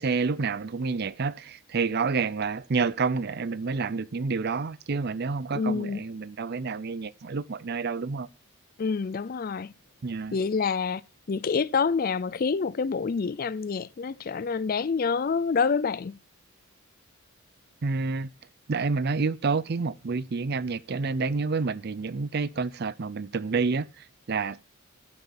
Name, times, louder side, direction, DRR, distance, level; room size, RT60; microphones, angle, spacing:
voice 1, 0.0-8.3 10.0-10.4 17.8-18.3 18.7-24.6, right 4 dB, 45° right, 0.5 m, -29 dB
voice 2, 5.5-6.0 8.8-9.7 10.3-11.0 11.3-16.2, left 5 dB, 40° left, 0.4 m, -27 dB
11.0 x 6.7 x 4.3 m
head